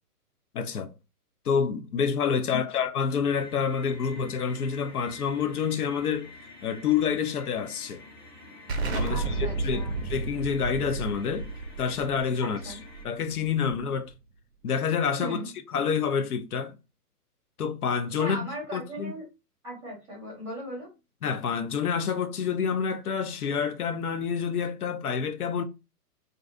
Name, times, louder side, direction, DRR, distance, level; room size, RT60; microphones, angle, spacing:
voice 1, 0.5-0.9 1.5-6.3 6.6-8.0 8.9-11.5 11.8-12.8 13.0-14.1 14.6-15.4 15.7-16.8 17.6-19.1 21.2-25.6, left 6 dB, 70° left, 0.5 m, -28 dB
sound 1, 3.2-13.0, left 3 dB, 30° left, 0.9 m, -49 dB
Explosion, 8.7-14.1, right 3 dB, 45° right, 0.5 m, -32 dB
voice 2, 9.1-10.0 12.4-12.8 15.2-15.5 18.2-19.2 19.6-20.9, equal, 5° right, 0.7 m, -38 dB
2.5 x 2.3 x 2.4 m
figure-of-eight pair, 130°, 48 cm